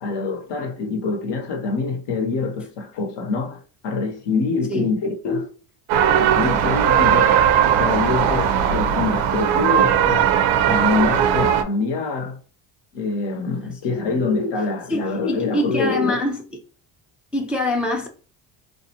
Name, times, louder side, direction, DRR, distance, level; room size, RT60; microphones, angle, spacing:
voice 1, 0.0-5.5 6.1-7.4 7.8-10.3 10.7-12.4 12.9-16.3, left 4 dB, 65° left, 0.8 m, -25 dB
sound 1, 5.9-11.6, right 9 dB, 75° right, 0.6 m, -18 dB
voice 2, 13.6-14.1 14.9-16.4 17.3-18.1, left 1 dB, 5° right, 0.4 m, -25 dB
2.4 x 2.1 x 2.7 m
supercardioid pair, 80°, 47 cm